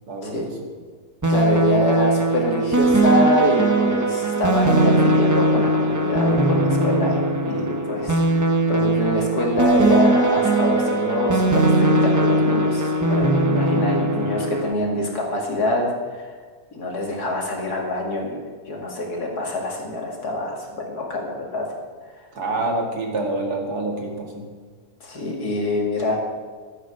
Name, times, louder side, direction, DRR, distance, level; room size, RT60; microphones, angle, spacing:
voice 1, 0.1-0.7 22.3-24.5, right 2 dB, 85° right, 2 dB, 2.5 m, -27 dB
sound 1, 1.2-14.7, right 2 dB, 15° right, 0.7 m, -20 dB
voice 2, 1.3-16.3 16.7-21.8 25.0-26.2, left 2 dB, 85° left, 0 dB, 2.9 m, -25 dB
13.5 x 9.0 x 6.6 m, 1.5 s
omnidirectional pair, 1.6 m